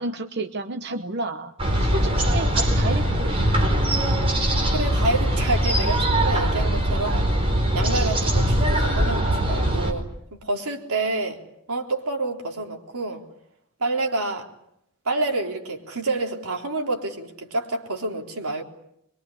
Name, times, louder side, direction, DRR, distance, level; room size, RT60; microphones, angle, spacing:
voice 1, 0.0-1.5 1.8-3.5, right 2 dB, 50° right, 7 dB, 1.0 m, -31 dB
sound 1, 1.6-9.9, right 1 dB, 25° right, 4.5 m, -21 dB
voice 2, 4.7-7.3 7.7-11.4 11.7-13.2 13.8-14.5 15.1-18.6, right 2 dB, 85° right, 2 dB, 3.8 m, -28 dB
23.5 x 23.5 x 10.0 m, 0.77 s
head